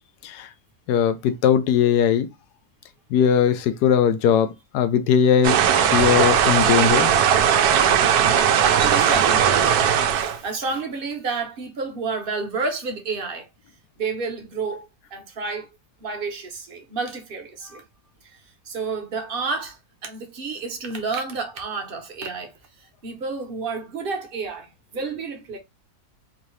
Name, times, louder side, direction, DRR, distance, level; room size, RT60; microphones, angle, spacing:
voice 1, 0.9-2.3 3.1-5.6 5.9-7.2, left 8 dB, 90° left, 1.2 m, -19 dB
sound 1, 5.4-10.4, right 8 dB, 80° right, 1.1 m, -18 dB
voice 2, 8.8-13.5 14.0-15.7 16.0-17.8 18.2-22.5 23.0-25.6, right 4 dB, 40° right, 0.9 m, -30 dB
3.8 x 2.7 x 3.1 m
omnidirectional pair, 1.7 m